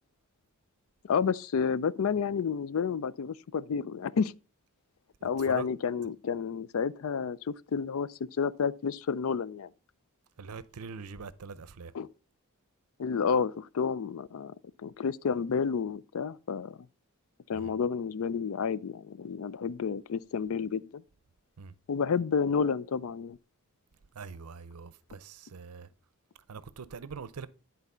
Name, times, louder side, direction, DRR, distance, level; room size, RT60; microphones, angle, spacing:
voice 1, 1.0-4.3 5.2-9.7 11.9-12.1 13.0-16.8 17.5-21.0 21.9-23.4, left 6 dB, 70° left, 0.4 m, -30 dB
voice 2, 5.2-5.7 10.4-11.9 17.5-17.8 21.6-21.7 24.1-25.9 26.5-27.5, right 5 dB, 85° right, 0.6 m, -43 dB
10.5 x 4.0 x 5.4 m
head